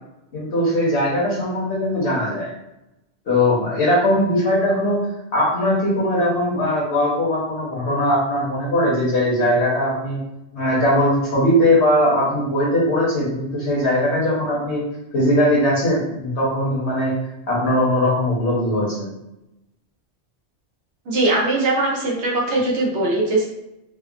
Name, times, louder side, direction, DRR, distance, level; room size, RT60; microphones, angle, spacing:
voice 1, 0.3-2.5 3.2-5.0 5.3-10.2 10.5-14.8 15.1-17.1 17.5-19.1, left 1 dB, 80° left, -5 dB, 1.4 m, -20 dB
voice 2, 21.1-23.5, right 2 dB, 80° right, -2 dB, 1.0 m, -20 dB
3.4 x 2.1 x 2.4 m, 0.88 s
omnidirectional pair, 1.1 m